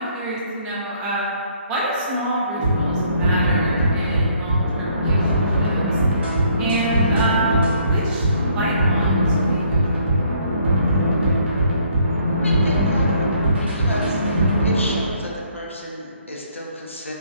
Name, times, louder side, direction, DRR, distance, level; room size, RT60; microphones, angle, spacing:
voice 1, 0.0-1.3 1.7-5.8 6.6-10.2, right 1 dB, 15° right, -6 dB, 0.3 m, -27 dB
sound 1, 2.5-15.0, equal, 60° right, 0.8 m, -20 dB
voice 2, 12.4-13.3 13.7-17.1, equal, 80° left, -3 dB, 0.5 m, -32 dB
3.0 x 2.3 x 2.4 m, 2.5 s
figure-of-eight pair, 135°, 7 cm